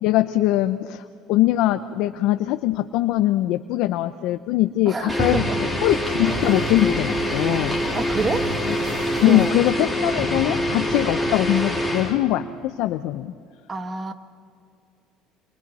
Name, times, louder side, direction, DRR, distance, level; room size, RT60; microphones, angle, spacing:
voice 1, 0.0-1.0 1.3-5.5 5.8-7.8 8.7-8.8 9.2-13.3, left 15 dB, 70° left, 8 dB, 0.7 m, -22 dB
voice 2, 4.9-5.6 7.9-8.5 9.2-9.6 13.7-14.1, right 4 dB, 25° right, 8 dB, 1.5 m, -27 dB
sound 1, 5.1-12.2, equal, 5° right, 4.0 m, -25 dB
sound 2, 5.9-10.1, right 2 dB, 90° right, 6.0 m, -36 dB
29.5 x 27.5 x 4.2 m, 2.3 s
cardioid pair, 115°, 0 cm